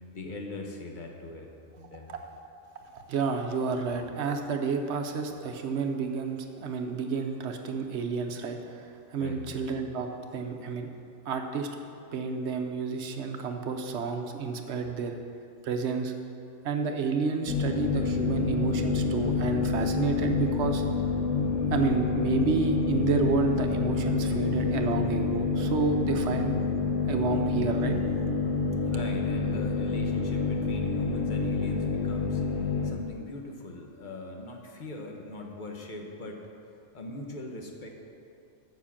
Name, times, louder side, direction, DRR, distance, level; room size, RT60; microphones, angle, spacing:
voice 1, 0.1-2.1 9.2-9.6 28.8-32.4 32.8-36.4 36.9-37.9, left 2 dB, 45° left, 1 dB, 1.0 m, -41 dB
voice 2, 2.9-8.9 9.1-10.9 11.3-11.7 12.1-15.1 15.6-16.1 16.6-20.8 21.7-26.6 27.0-28.0, right 4 dB, 65° right, 5 dB, 1.0 m, -30 dB
sound 1, 17.5-32.9, left 4 dB, 80° left, 1.1 m, -28 dB
7.1 x 5.9 x 7.2 m, 2.6 s
omnidirectional pair, 1.3 m